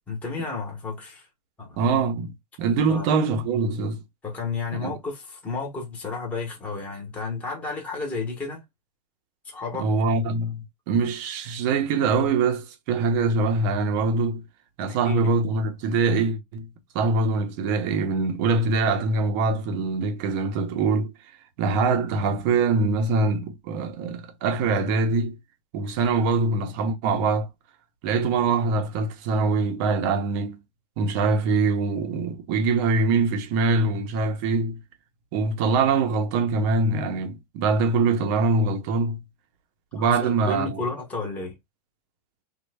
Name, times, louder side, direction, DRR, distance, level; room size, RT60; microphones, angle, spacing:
voice 1, 0.1-1.3 1.6-1.8 2.9-3.1 4.2-8.6 9.5-9.9 14.9-15.3 40.0-41.5, left 3 dB, 5° left, 0.7 m, -32 dB
voice 2, 1.8-2.3 2.6-4.0 4.7-4.9 9.7-14.4 14.8-16.7 16.9-21.1 21.6-25.4 25.7-27.5 28.0-30.6 31.0-34.8 35.3-39.2 39.9-40.8, right 4 dB, 30° right, 0.5 m, -23 dB
3.1 x 2.1 x 3.2 m
supercardioid pair, 165°, 21 cm